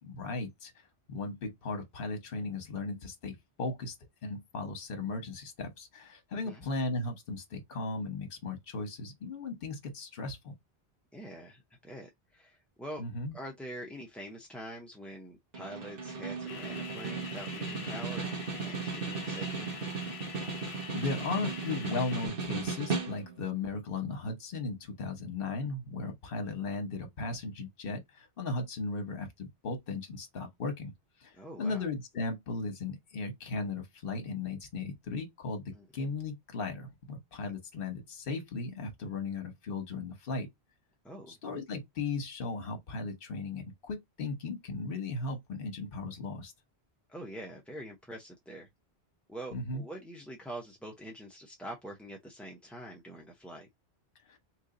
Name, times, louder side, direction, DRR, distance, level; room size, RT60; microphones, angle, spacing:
voice 1, 0.0-0.7 1.1-4.0 4.2-10.5 13.0-13.3 20.9-30.9 31.2-31.3 31.6-40.5 41.3-46.5 49.5-49.8 54.3-54.4, left 3 dB, 60° left, 1.1 m, -36 dB
voice 2, 11.1-13.0 13.3-19.7 31.4-31.9 35.7-35.8 41.0-41.4 47.1-48.7 49.3-53.7, right 1 dB, ahead, 0.5 m, -45 dB
Snare drum, 15.5-23.5, right 4 dB, 60° right, 1.2 m, -36 dB
sound 1, 16.5-22.3, left 8 dB, 75° left, 0.9 m, -46 dB
3.1 x 2.6 x 3.7 m
omnidirectional pair, 1.1 m